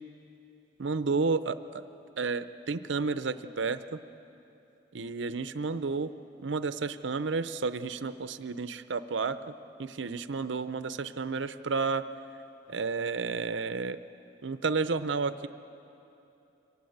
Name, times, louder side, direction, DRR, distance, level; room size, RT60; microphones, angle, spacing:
voice 1, 0.8-1.9 2.2-4.0 4.9-6.1 6.4-12.1 12.7-14.0 14.4-15.5, right 4 dB, 70° right, 12 dB, 0.6 m, -31 dB
25.0 x 18.0 x 7.9 m, 2.9 s
head